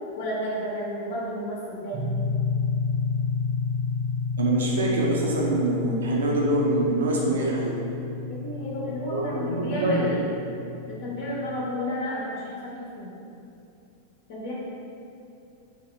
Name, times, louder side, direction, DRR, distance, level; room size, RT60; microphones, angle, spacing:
voice 1, 0.1-2.1 8.3-10.2 10.9-13.1 14.3-14.5, equal, 55° left, -6 dB, 0.7 m, -32 dB
sound 1, 1.9-11.7, left 5 dB, 25° right, 0.5 m, -31 dB
voice 2, 4.4-7.8 9.1-10.1, right 2 dB, 65° right, -2 dB, 0.6 m, -25 dB
3.5 x 2.9 x 3.5 m, 2.7 s
figure-of-eight pair, 90°, 0 cm